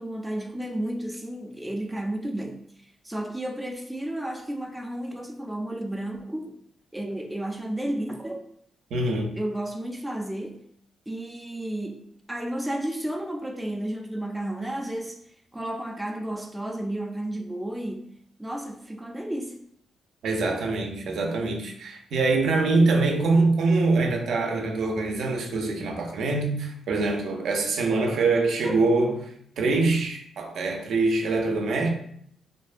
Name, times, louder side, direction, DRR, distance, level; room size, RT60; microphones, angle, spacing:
voice 1, 0.0-2.7 3.0-6.6 6.9-8.4 9.3-10.6 11.1-15.2 15.5-19.6 28.6-28.8, right 1 dB, 5° right, 0.3 m, -32 dB
voice 2, 8.9-9.4 20.2-29.3 29.6-31.9, right 3 dB, 75° right, 0.4 m, -24 dB
2.5 x 2.1 x 2.4 m
cardioid pair, 95°, 0 cm